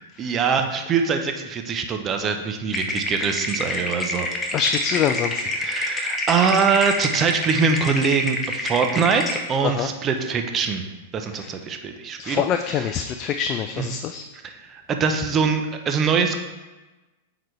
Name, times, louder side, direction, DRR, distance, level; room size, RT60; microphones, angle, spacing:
voice 1, 0.2-4.3 5.6-10.8 11.1-12.4 12.7-12.9 13.8-13.9 14.4-16.4, right 5 dB, 30° right, 5 dB, 0.7 m, -23 dB
sound 1, 2.7-9.4, left 2 dB, 20° left, 0.8 m, -28 dB
voice 2, 4.5-5.4 9.6-9.9 11.3-11.5 12.2-14.2, left 7 dB, 35° left, 7 dB, 0.3 m, -25 dB
8.8 x 4.0 x 3.2 m, 1.1 s
hypercardioid pair, 120°, 0 cm